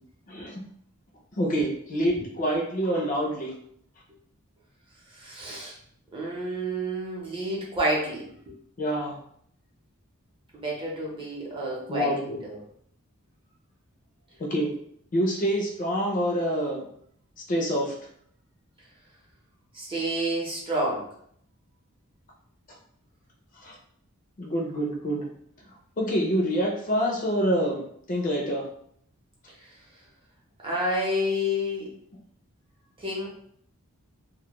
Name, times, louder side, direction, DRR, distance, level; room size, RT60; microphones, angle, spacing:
voice 1, 0.3-0.6 1.3-3.5 8.8-9.2 11.9-12.4 14.4-14.7 15.1-16.9 17.5-17.9 23.6-23.8 24.4-25.3 26.0-27.8 28.1-28.6, equal, 40° left, -1 dB, 0.4 m, -26 dB
voice 2, 5.1-5.8 6.1-8.5 10.5-12.6 19.7-21.1 29.6-29.7 30.6-31.9 33.0-33.3, equal, 25° right, -4 dB, 0.7 m, -29 dB
2.2 x 2.1 x 2.9 m, 0.66 s
head